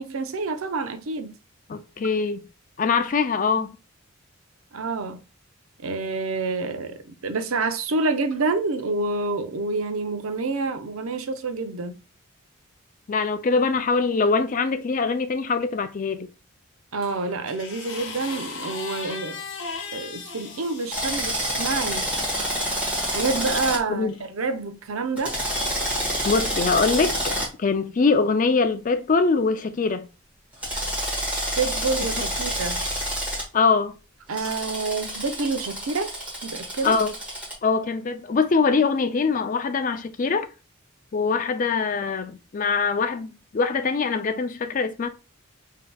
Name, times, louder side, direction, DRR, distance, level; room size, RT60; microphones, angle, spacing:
voice 1, 0.0-1.3 4.7-5.2 5.8-12.0 16.9-19.4 19.9-22.1 23.1-25.4 31.6-32.8 34.3-36.1 36.4-37.0, right 3 dB, 75° right, 0.6 m, -28 dB
voice 2, 1.7-2.4 2.8-3.8 13.1-16.3 23.9-24.1 26.2-27.3 27.6-30.1 33.5-34.0 36.8-37.1 37.6-40.5 41.1-45.1, left 4 dB, 35° left, 0.4 m, -23 dB
sound 1, 17.0-21.3 22.1-23.2 24.1-24.3, left 4 dB, 55° left, 0.8 m, -37 dB
Drill, 20.9-23.8 25.2-27.5 30.6-33.4 34.4-37.5, equal, 5° right, 1.2 m, -28 dB
5.3 x 2.8 x 2.2 m
head